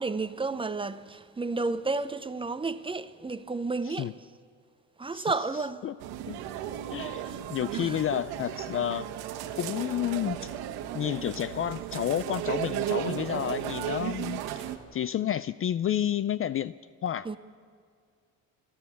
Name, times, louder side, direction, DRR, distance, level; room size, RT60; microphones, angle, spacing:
voice 1, 0.0-4.2 5.0-5.9 7.2-7.4 7.7-8.0 17.2-17.4, right 3 dB, 15° right, 0.7 m, -32 dB
sound 1, 6.0-14.8, right 11 dB, 90° right, 1.4 m, -35 dB
voice 2, 6.9-9.1 9.6-10.5 10.9-14.4 14.9-16.7 17.0-17.4, left 10 dB, 35° left, 0.4 m, -30 dB
28.5 x 13.0 x 7.2 m
cardioid pair, 105°, 37 cm